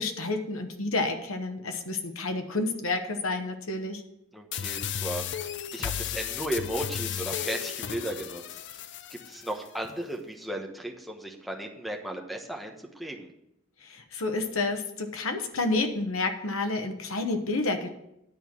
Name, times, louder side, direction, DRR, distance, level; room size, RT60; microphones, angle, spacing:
voice 1, 0.0-4.0 13.8-17.9, left 3 dB, 80° left, 6 dB, 1.1 m, -30 dB
voice 2, 4.3-5.5 5.7-8.4 9.1-13.3, right 1 dB, ahead, 0 dB, 1.1 m, -35 dB
sound 1, 4.5-9.5, left 9 dB, 60° left, 0.4 m, -34 dB
10.5 x 4.5 x 7.2 m, 0.81 s
head